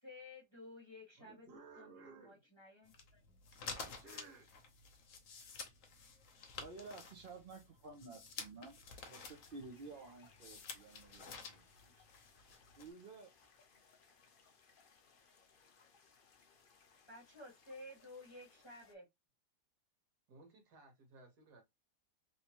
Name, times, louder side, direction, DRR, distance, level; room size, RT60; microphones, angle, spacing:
voice 1, 0.0-3.4 17.1-19.1, left 2 dB, 20° left, 1.2 m, -54 dB
voice 2, 1.2-2.4 3.7-4.5 20.3-21.6, right 3 dB, 70° right, 1.7 m, -58 dB
sound 1, 2.9-12.9, left 5 dB, 60° left, 1.1 m, -51 dB
voice 3, 6.6-8.8 9.1-11.6 12.8-13.3, right 3 dB, 50° right, 0.6 m, -52 dB
sound 2, 8.9-18.9, left 5 dB, 85° left, 0.4 m, -68 dB
3.2 x 2.9 x 2.9 m
omnidirectional pair, 1.8 m